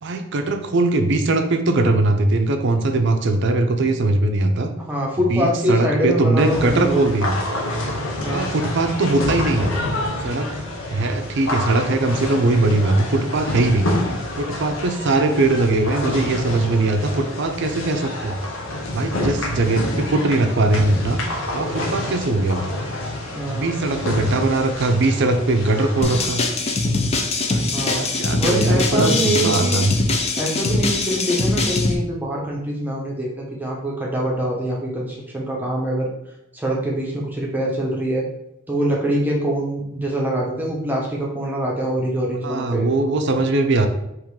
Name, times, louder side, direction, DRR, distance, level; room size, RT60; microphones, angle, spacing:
voice 1, 0.0-4.7 5.3-7.4 8.3-9.7 10.2-13.9 14.4-18.4 18.9-21.2 21.5-22.7 23.5-26.4 27.5-29.9 42.4-43.9, right 2 dB, 55° right, 6 dB, 0.5 m, -20 dB
voice 2, 4.9-7.0 8.2-8.5 19.2-19.3 23.3-23.8 27.7-28.1 28.4-29.8 30.4-36.1 36.5-38.3 38.7-42.8, right 1 dB, 10° right, -3 dB, 0.8 m, -24 dB
sound 1, 6.4-26.3, left 1 dB, 70° left, 0.9 m, -28 dB
sound 2, 26.0-31.9, left 2 dB, 30° left, 0.5 m, -22 dB
3.7 x 3.1 x 4.7 m, 0.85 s
head